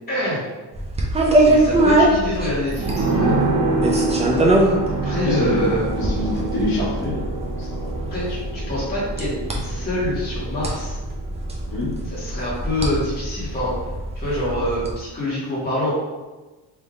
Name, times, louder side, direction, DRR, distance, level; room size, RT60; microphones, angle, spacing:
voice 1, 0.1-0.4 1.3-3.3 5.0-5.9 8.1-9.3 9.6-11.0 12.1-13.8 14.1-15.9, left 1 dB, 20° left, -8 dB, 1.3 m, -26 dB
sound 1, 0.7-14.9, right 1 dB, 15° right, 0.3 m, -23 dB
sound 2, 2.7-12.0 12.3-12.4, right 3 dB, 65° right, 0.9 m, -26 dB
voice 2, 4.3-4.6 5.2-5.6 6.0-7.2 7.6-7.9 11.7-11.9, left 1 dB, 50° left, -7 dB, 1.3 m, -26 dB
3.4 x 2.7 x 3.6 m, 1.2 s
cardioid pair, 165°, 44 cm